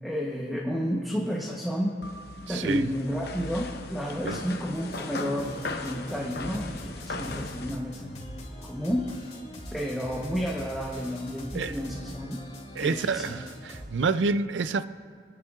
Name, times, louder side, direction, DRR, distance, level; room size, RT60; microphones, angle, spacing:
voice 1, 0.0-2.0 2.5-8.1 8.7-9.1 9.7-12.4 12.8-13.3, equal, ahead, 0.9 m, -31 dB
sound 1, 2.0-7.8, left 2 dB, 60° left, 0.8 m, -38 dB
voice 2, 2.5-2.9 4.2-4.4 11.5-11.9 12.7-14.8, right 4 dB, 80° right, 0.4 m, -28 dB
sound 2, 4.7-13.9, left 1 dB, 35° left, 2.4 m, -43 dB
28.0 x 10.0 x 2.4 m
head